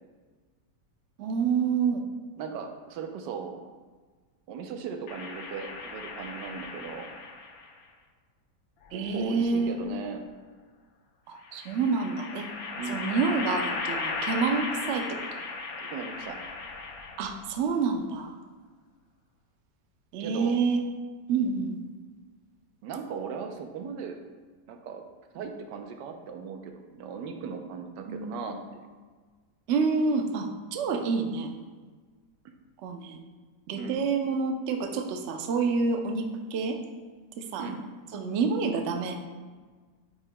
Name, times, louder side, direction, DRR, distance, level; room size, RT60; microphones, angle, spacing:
voice 1, 1.2-2.0 8.9-9.8 11.3-12.5 12.9-15.2 17.2-18.3 20.1-20.8 21.3-21.8 25.4-25.5 28.1-28.5 29.7-31.5 32.8-33.2 33.7-36.8 37.4-37.7 38.1-39.2, right 4 dB, 65° right, 4 dB, 0.7 m, -28 dB
voice 2, 2.4-3.7 4.5-7.1 8.9-10.2 12.8-13.1 15.8-16.4 20.2-20.6 22.8-24.2 24.7-25.0 25.3-26.7 27.0-28.8 33.7-34.0 37.6-37.8, right 6 dB, 90° right, 5 dB, 1.3 m, -38 dB
sound 1, 5.1-7.7 8.9-9.9 11.5-17.5, left 4 dB, 65° left, 1.1 m, -36 dB
9.4 x 4.6 x 2.2 m, 1.4 s
omnidirectional pair, 1.8 m